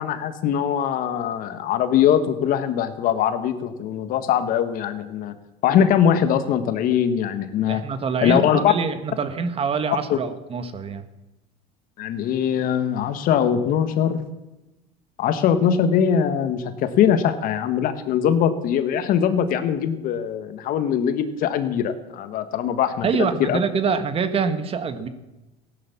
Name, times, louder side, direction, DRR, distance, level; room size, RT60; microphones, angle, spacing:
voice 1, 0.0-5.4 5.6-7.8 8.2-8.7 10.1-10.2 12.0-14.2 15.2-23.1 23.4-23.6, left 9 dB, 55° left, 11 dB, 1.6 m, -21 dB
voice 2, 7.7-11.0 23.0-25.1, right 5 dB, 35° right, 10 dB, 1.6 m, -25 dB
15.5 x 11.0 x 7.2 m, 1.0 s
supercardioid pair, 100°, 17 cm